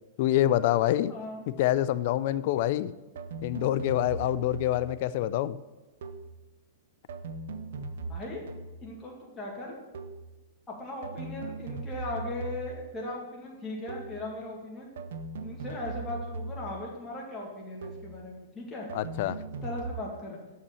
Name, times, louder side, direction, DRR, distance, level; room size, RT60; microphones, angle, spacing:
voice 1, 0.2-1.1 1.6-2.9 3.4-5.6 18.9-19.4, left 13 dB, 50° left, 15 dB, 0.4 m, -26 dB
voice 2, 1.1-1.4 8.1-8.4 8.8-9.8 10.7-14.9 15.4-18.9 19.6-20.4, left 2 dB, 10° left, -4 dB, 1.8 m, -38 dB
sound 1, 3.2-5.0 6.0-6.4 7.1-9.0 9.9-10.4 11.0-12.9 13.9-14.3 15.0-16.9 17.8-18.2 18.9-20.0, right 3 dB, 70° right, 0.7 m, -39 dB
6.9 x 5.6 x 6.9 m, 1.1 s
hypercardioid pair, 145°, 0 cm